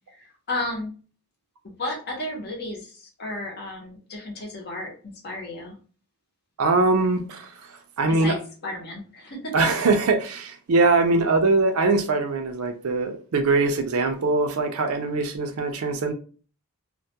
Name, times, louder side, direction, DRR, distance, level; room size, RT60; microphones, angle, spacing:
voice 1, 0.1-0.9 1.6-5.8 8.2-9.5, left 1 dB, 50° left, 0.7 m, -33 dB
voice 2, 6.6-8.4 9.5-16.1, right 3 dB, 70° right, 0.5 m, -22 dB
2.2 x 2.1 x 2.8 m
head